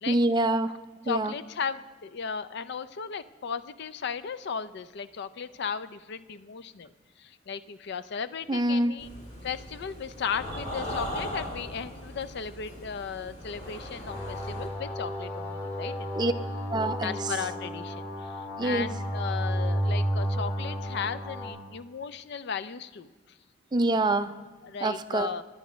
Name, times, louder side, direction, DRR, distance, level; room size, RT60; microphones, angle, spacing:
voice 1, 0.1-0.7 1.1-1.3 8.5-8.9 16.1-16.3 16.7-17.2 18.6-18.9 23.7-24.3 24.8-25.3, right 2 dB, 20° right, 10 dB, 0.4 m, -25 dB
voice 2, 1.0-6.9 7.2-9.1 9.4-16.3 17.0-18.4 18.6-23.1 24.6-25.4, left 6 dB, 60° left, 14 dB, 0.4 m, -36 dB
sound 1, 9.0-14.7, equal, 35° left, 2.7 m, -39 dB
sound 2, 14.1-21.5, equal, 15° left, 3.0 m, -32 dB
21.0 x 10.0 x 3.1 m, 1.3 s
head